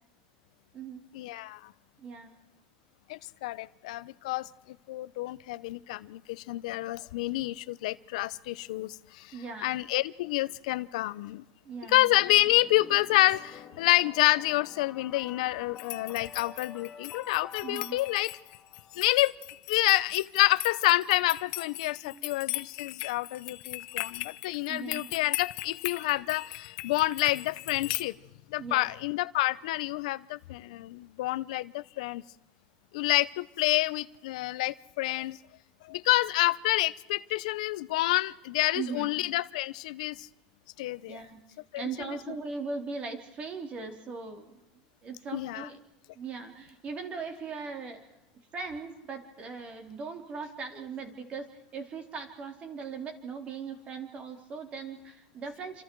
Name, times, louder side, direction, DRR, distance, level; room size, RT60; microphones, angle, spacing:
voice 1, 1.1-1.7 3.1-4.5 4.9-9.3 9.6-11.4 11.9-18.3 18.9-19.3 19.7-28.2 28.5-32.2 32.9-35.4 35.8-40.3 40.8-41.2 41.7-41.8 45.3-45.7, left 18 dB, 80° left, 16 dB, 0.8 m, -28 dB
voice 2, 2.0-2.3 9.3-9.8 11.6-12.1 17.6-18.0 22.0-22.3 24.7-25.1 28.6-28.9 38.7-39.1 41.1-41.4 41.8-44.6 45.0-45.8 46.2-48.1 48.5-55.8, right 5 dB, 30° right, 5 dB, 3.6 m, -39 dB
sound 1, 12.1-19.1, left 7 dB, 20° left, 3.0 m, -48 dB
sound 2, 15.8-28.0, left 20 dB, 65° left, 1.1 m, -39 dB
27.5 x 27.0 x 4.7 m, 0.97 s
supercardioid pair, 145°, 4 cm